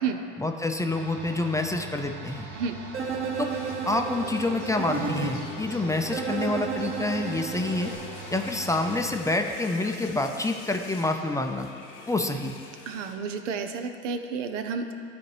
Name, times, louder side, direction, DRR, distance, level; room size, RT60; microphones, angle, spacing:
voice 1, 0.4-2.5 3.4-3.5 3.9-7.9 8.3-11.7 12.1-12.5, left 2 dB, 10° left, 4 dB, 0.4 m, -27 dB
sound 1, 0.9-9.2, right 5 dB, 55° right, 1.3 m, -42 dB
sound 2, 2.9-5.3 6.1-8.0, right 5 dB, 35° right, 1.2 m, -32 dB
sound 3, 3.3-13.2, left 4 dB, 80° left, 1.1 m, -45 dB
voice 2, 12.9-15.0, right 5 dB, 85° right, 7 dB, 0.6 m, -31 dB
12.0 x 4.2 x 3.3 m, 2.3 s
hypercardioid pair, 75°, 36 cm